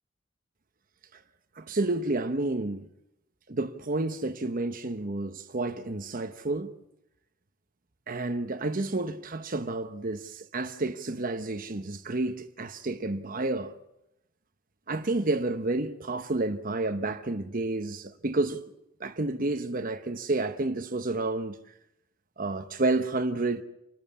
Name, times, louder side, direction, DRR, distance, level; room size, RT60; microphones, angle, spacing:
voice 1, 1.6-2.9 3.5-6.7 8.1-13.7 14.9-18.6 19.0-21.6 22.4-23.6, right 2 dB, 45° right, 1.0 m, -30 dB
29.0 x 12.5 x 8.6 m
head